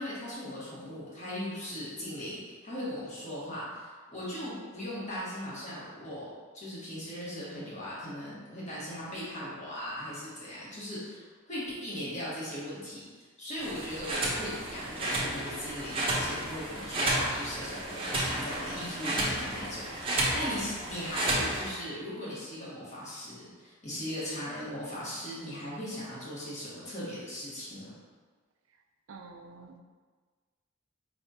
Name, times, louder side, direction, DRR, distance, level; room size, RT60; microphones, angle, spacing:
voice 1, 0.0-6.3 6.5-13.0 13.4-27.9, equal, 35° left, -8 dB, 1.4 m, -38 dB
sound 1, 13.6-21.7, right 1 dB, 25° right, 0.8 m, -32 dB
voice 2, 29.1-29.8, right 4 dB, 75° right, 4 dB, 0.4 m, -48 dB
4.8 x 3.4 x 2.8 m, 1.4 s
head